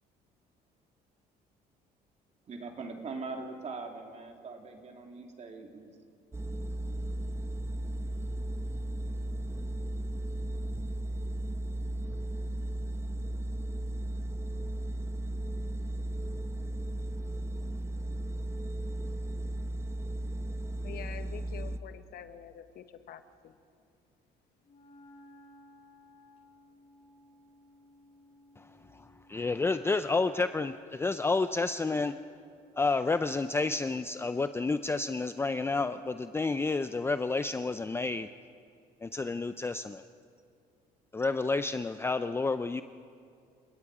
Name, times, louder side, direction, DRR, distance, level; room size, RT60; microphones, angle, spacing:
voice 1, 2.5-5.9, right 4 dB, 40° right, 2 dB, 2.9 m, -41 dB
sound 1, 6.3-21.8, right 1 dB, 15° right, 1.0 m, -35 dB
voice 2, 20.8-23.5, left 10 dB, 65° left, 10 dB, 1.1 m, -46 dB
Wind instrument woodwind instrument, 24.6-31.3, left 1 dB, 40° left, 3.4 m, -58 dB
voice 3, 28.6-32.2 32.8-38.3 39.0-40.1 41.1-42.8, left 3 dB, 15° left, 11 dB, 0.5 m, -30 dB
30.0 x 17.5 x 4.9 m, 2.4 s
cardioid pair, 110°, 17 cm